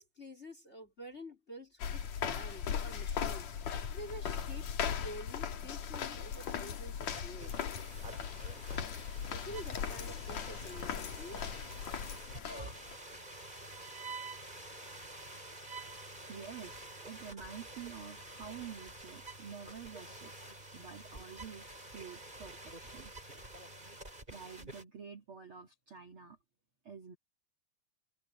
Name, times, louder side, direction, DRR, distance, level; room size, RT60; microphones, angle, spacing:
voice 1, 0.0-3.5 3.9-7.6 9.0-11.4, equal, 20° left, 3.3 m, -49 dB
sound 1, 1.8-12.9, left 8 dB, 55° left, 2.6 m, -38 dB
sound 2, 7.1-24.8, right 2 dB, 10° right, 5.7 m, -48 dB
voice 2, 16.3-20.4 20.7-23.1 24.3-26.4 26.8-27.2, right 7 dB, 40° right, 2.3 m, -49 dB
omnidirectional pair, 4.5 m